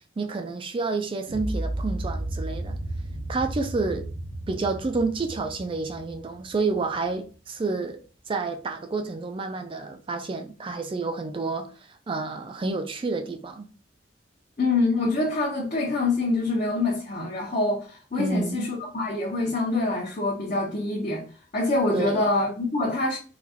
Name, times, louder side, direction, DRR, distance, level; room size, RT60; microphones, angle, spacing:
voice 1, 0.2-2.8 3.3-4.1 4.5-8.0 8.3-13.7 18.2-18.7 21.9-22.3, right 3 dB, 30° right, 0.3 m, -29 dB
sound 1, 1.3-7.3, right 1 dB, 90° right, 0.6 m, -34 dB
voice 2, 14.6-21.3 21.5-23.2, left 2 dB, 45° left, 0.8 m, -25 dB
3.8 x 2.3 x 2.7 m
head